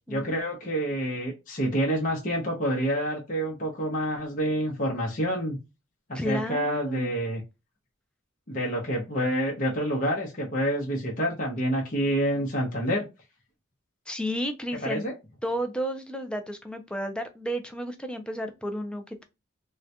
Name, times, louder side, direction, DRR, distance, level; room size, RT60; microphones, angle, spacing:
voice 1, 0.1-5.6 6.1-7.4 8.5-13.0 14.8-15.1, equal, 40° left, -2 dB, 0.8 m, -28 dB
voice 2, 6.1-7.1 14.1-15.0 15.4-19.2, equal, 5° left, 6 dB, 0.4 m, -32 dB
3.7 x 2.2 x 2.8 m, 0.25 s
head